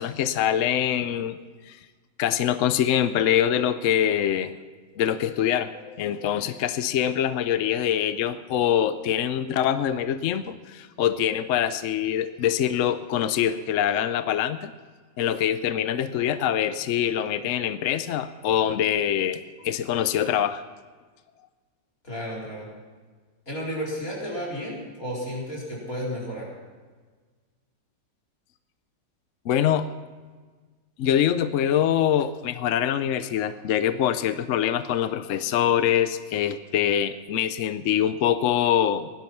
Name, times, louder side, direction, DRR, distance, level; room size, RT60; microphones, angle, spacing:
voice 1, 0.0-1.4 1.7-1.8 2.2-4.5 5.0-14.7 15.2-20.6 29.5-29.9 31.0-39.1, left 10 dB, 70° left, 12 dB, 0.7 m, -24 dB
voice 2, 22.0-22.7 23.5-26.5, equal, 50° left, -4 dB, 4.5 m, -32 dB
17.0 x 12.0 x 5.9 m, 1.4 s
omnidirectional pair, 1.9 m